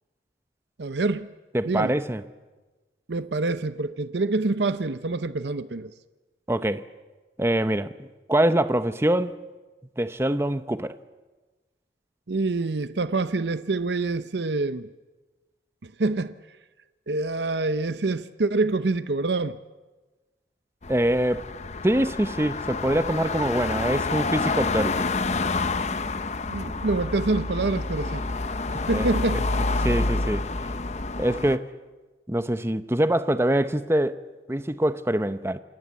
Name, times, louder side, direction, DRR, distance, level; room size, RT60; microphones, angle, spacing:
voice 1, 0.8-1.3 1.6-2.0 3.1-5.9 12.3-14.9 16.0-16.3 17.1-19.6 26.5-28.3 28.7-29.4, right 3 dB, 75° right, 0.8 m, -26 dB
voice 2, 1.5-2.2 6.5-6.8 7.4-9.4 10.0-10.9 20.9-21.4 21.8-25.1 28.7-29.1 29.8-30.5 31.2-31.7 32.3-34.2 34.5-35.6, right 1 dB, 15° right, 0.8 m, -24 dB
sound 1, 20.8-31.6, left 3 dB, 40° left, 0.8 m, -28 dB
27.5 x 20.0 x 8.3 m
head